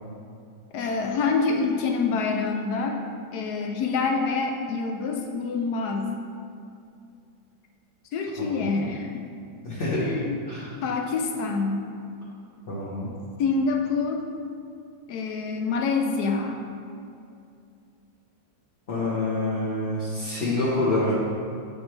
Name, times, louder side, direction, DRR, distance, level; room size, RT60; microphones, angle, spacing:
voice 1, 0.7-3.0 3.3-6.1 8.1-9.2 10.0-10.4 10.8-11.8 13.4-14.2 15.1-16.6, left 4 dB, 70° left, 2 dB, 1.0 m, -26 dB
voice 2, 8.4-8.8 9.6-10.1 10.5-10.7 12.7-13.1 18.9-21.1, left 2 dB, 35° left, -8 dB, 1.0 m, -27 dB
7.0 x 5.2 x 3.2 m, 2.5 s
omnidirectional pair, 2.0 m